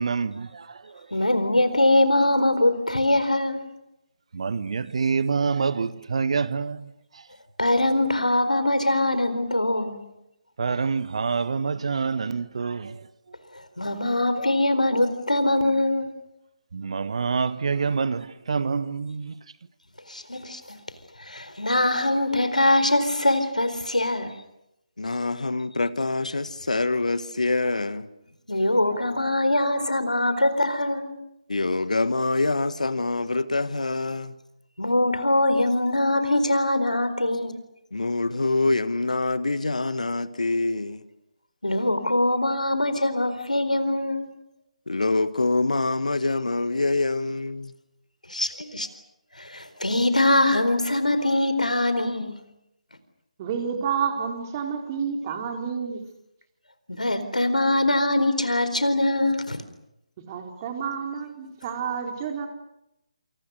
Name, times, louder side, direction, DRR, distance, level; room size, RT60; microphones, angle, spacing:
voice 1, 0.0-1.2 4.3-7.3 10.6-13.4 16.7-19.4, right 5 dB, 55° right, 1.4 m, -27 dB
voice 2, 1.1-3.7 7.6-10.0 13.8-16.1 20.1-20.8 21.2-24.3 28.5-31.2 34.8-37.5 41.6-44.3 48.3-48.9 49.4-52.4 56.9-59.6, left 1 dB, 85° left, 4.3 m, -23 dB
voice 3, 25.0-28.1 31.5-34.3 37.9-41.1 44.9-47.7 48.4-48.5, left 2 dB, 70° left, 1.6 m, -25 dB
voice 4, 53.4-56.0 60.3-62.5, right 7 dB, 25° right, 4.4 m, -29 dB
28.0 x 28.0 x 6.6 m
figure-of-eight pair, 150°, 4 cm